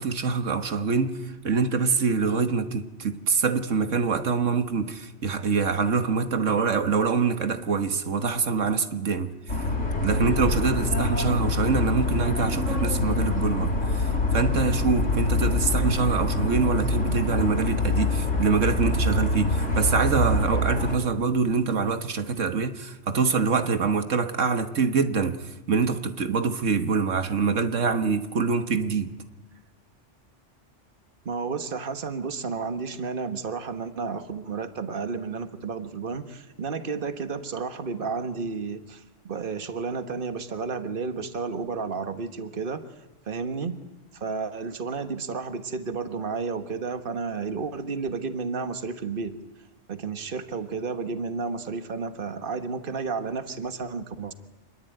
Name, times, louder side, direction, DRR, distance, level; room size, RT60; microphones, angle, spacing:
voice 1, 0.0-9.6 10.0-29.1, right 5 dB, 85° right, 1.8 m, -25 dB
sound 1, 9.5-21.0, left 2 dB, 85° left, 4.7 m, -25 dB
voice 2, 31.2-42.8 43.2-43.8 44.1-49.4 49.9-54.3, right 4 dB, 45° right, 1.6 m, -32 dB
27.0 x 21.0 x 9.3 m
omnidirectional pair, 1.2 m